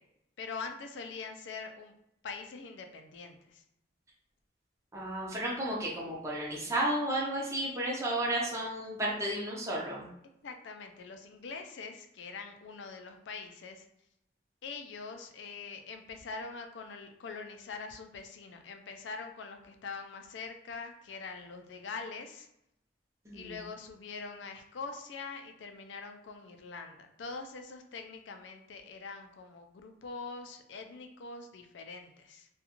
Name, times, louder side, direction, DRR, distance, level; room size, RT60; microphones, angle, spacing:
voice 1, 0.4-1.9 2.2-3.6 10.4-13.9 14.6-22.5 23.3-32.5, left 4 dB, 75° left, 6 dB, 0.4 m, -43 dB
voice 2, 4.9-10.1 23.3-23.6, right 1 dB, 15° right, -4 dB, 0.6 m, -33 dB
2.4 x 2.2 x 2.9 m, 0.81 s
head